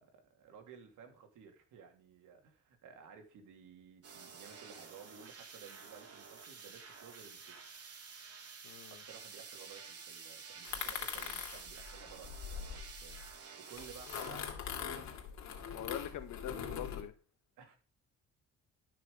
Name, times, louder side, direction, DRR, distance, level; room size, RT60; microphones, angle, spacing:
voice 1, 0.0-7.6 8.9-15.1 17.6-17.8, right 6 dB, 85° right, 2.9 m, -56 dB
sound 1, 4.0-14.3, right 5 dB, 50° right, 2.4 m, -51 dB
voice 2, 8.6-9.0 15.7-17.1, left 11 dB, 85° left, 1.5 m, -43 dB
sound 2, 10.6-13.3 13.8-17.0, left 7 dB, 65° left, 2.8 m, -42 dB
12.5 x 6.2 x 5.4 m
cardioid pair, 90°, 30 cm